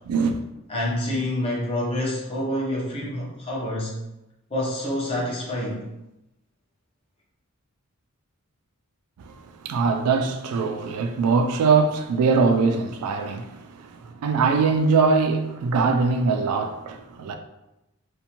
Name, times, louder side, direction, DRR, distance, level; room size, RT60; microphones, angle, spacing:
voice 1, 0.1-0.4 9.2-17.3, right 4 dB, 90° right, 0.3 m, -22 dB
voice 2, 0.7-3.9 4.5-5.8, left 1 dB, 25° left, 0.6 m, -27 dB
2.5 x 2.1 x 2.8 m
head